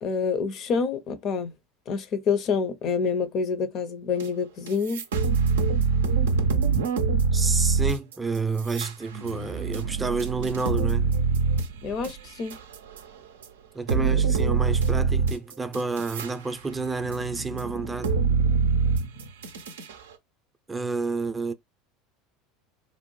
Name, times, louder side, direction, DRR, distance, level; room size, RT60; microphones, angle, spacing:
voice 1, 0.0-1.5 1.9-5.0 11.8-12.6, left 5 dB, 45° left, 0.6 m, -27 dB
sound 1, 4.2-4.3 4.7-13.0 13.4-13.5 13.9-16.3 16.7-19.9, right 5 dB, 70° right, 0.4 m, -25 dB
voice 2, 7.3-11.1 13.7-18.1 20.7-21.5, right 4 dB, 15° right, 0.5 m, -30 dB
2.6 x 2.0 x 3.0 m
figure-of-eight pair, 75°, 0 cm